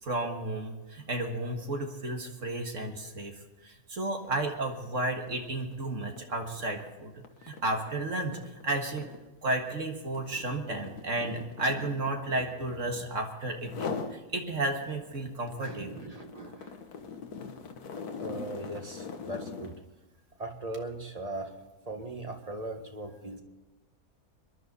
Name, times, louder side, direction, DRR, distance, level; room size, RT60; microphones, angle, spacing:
voice 1, 0.0-3.3 3.6-9.1 9.4-16.0, right 2 dB, 55° right, 3 dB, 2.0 m, -33 dB
sound 1, 4.2-4.4 4.7-13.2 13.6-14.2 14.6-19.8, left 5 dB, 85° left, 1.7 m, -41 dB
voice 2, 15.6-16.8 18.2-19.8 20.4-21.5 21.8-23.4, right 2 dB, 25° right, 4 dB, 1.7 m, -39 dB
25.5 x 11.5 x 4.1 m, 1.1 s
omnidirectional pair, 1.6 m